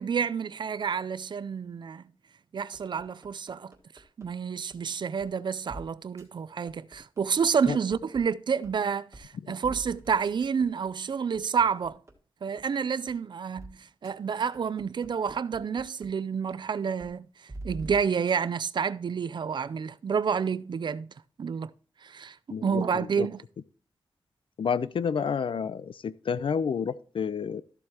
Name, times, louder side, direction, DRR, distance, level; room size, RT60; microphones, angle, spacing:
voice 1, 0.0-2.0 2.5-3.7 4.2-12.0 12.4-17.3 17.6-21.1 21.4-21.7 22.0-23.4, right 6 dB, 55° right, 0.4 m, -29 dB
sound 1, 2.7-4.3 4.7-4.8 5.2-5.3 5.7-5.8 6.2-6.3 6.7-8.2 8.6-8.7 9.1-9.3 9.6-12.1 12.6-12.7 13.1-13.2 13.6-13.7 14.0-14.1 14.5-16.1 16.5-16.6 17.0-17.1 17.5-18.3, right 2 dB, 30° right, 1.6 m, -44 dB
voice 2, 22.5-23.3 24.6-27.6, left 6 dB, 65° left, 0.5 m, -30 dB
13.0 x 7.7 x 2.9 m
wide cardioid pair, 155°, 9 cm